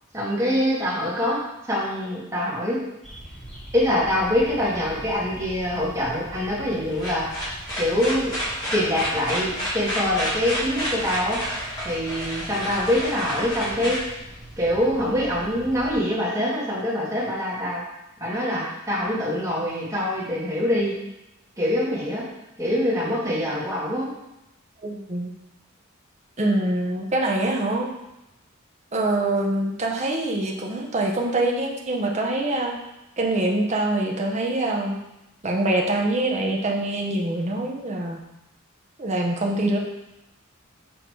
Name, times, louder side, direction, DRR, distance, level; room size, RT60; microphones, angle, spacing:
voice 1, 0.1-1.4 1.7-2.8 3.7-7.3 7.8-8.3 8.7-11.4 11.8-14.0 14.6-17.8 18.2-20.9 21.6-22.2 22.6-24.1, left 1 dB, 15° right, -7 dB, 2.0 m, -24 dB
sound 1, 3.0-16.0, right 1 dB, 5° left, 2.0 m, -42 dB
sound 2, 6.7-14.8, equal, 20° left, 2.0 m, -30 dB
voice 2, 24.8-25.3 26.4-27.9 28.9-32.7 33.2-34.9 35.4-38.2 39.0-39.8, right 2 dB, 35° right, 0 dB, 0.9 m, -24 dB
6.3 x 3.8 x 4.7 m, 0.92 s
head